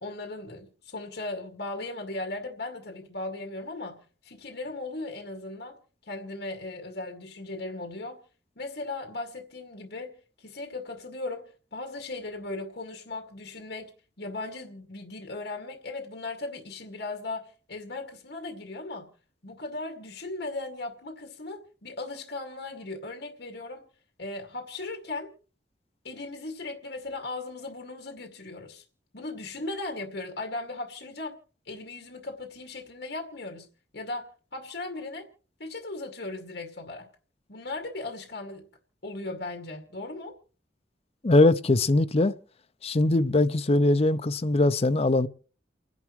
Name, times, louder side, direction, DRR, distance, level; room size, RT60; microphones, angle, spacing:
voice 1, 0.0-5.8 6.1-8.2 8.6-13.9 14.2-19.1 19.4-23.9 24.2-25.3 26.0-28.8 29.1-31.4 31.7-33.7 33.9-35.3 35.6-37.1 37.5-38.6 39.0-40.4, left 2 dB, 65° left, 2.2 m, -37 dB
voice 2, 41.2-42.3 42.8-45.3, left 2 dB, 35° left, 0.6 m, -21 dB
29.5 x 11.0 x 3.1 m
head